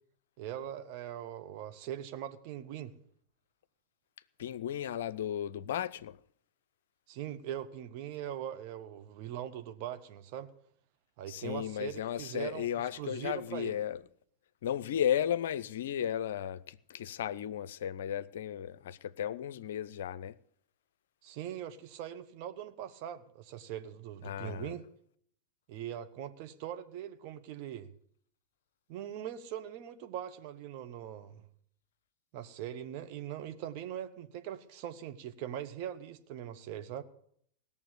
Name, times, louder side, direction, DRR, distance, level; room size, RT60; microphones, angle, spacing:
voice 1, 0.4-2.9 7.1-10.5 11.2-13.8 21.2-24.9 25.7-27.9 28.9-31.4 32.3-37.0, right 11 dB, 45° right, 1.1 m, -41 dB
voice 2, 4.4-6.2 11.3-14.0 14.6-20.4 24.2-24.7, left 10 dB, 60° left, 0.5 m, -34 dB
17.5 x 7.0 x 8.4 m
figure-of-eight pair, 90°, 0 cm